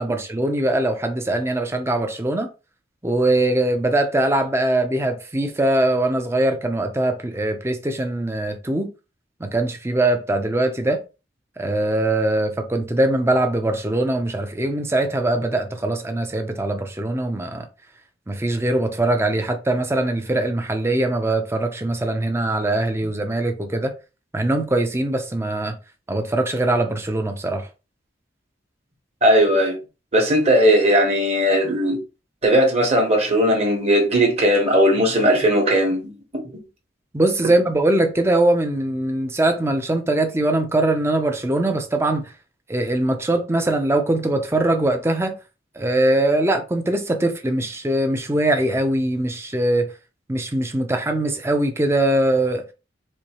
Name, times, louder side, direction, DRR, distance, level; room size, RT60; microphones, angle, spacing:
voice 1, 0.0-2.5 3.0-8.9 9.4-11.0 11.6-17.7 18.3-23.9 24.3-25.8 26.1-27.7 37.1-42.3 42.7-45.3 45.8-49.9 50.3-52.6, right 1 dB, 15° right, 0.6 m, -21 dB
voice 2, 29.2-29.8 30.1-32.0 32.4-36.1, equal, 35° right, 1.3 m, -17 dB
4.5 x 2.7 x 3.0 m
head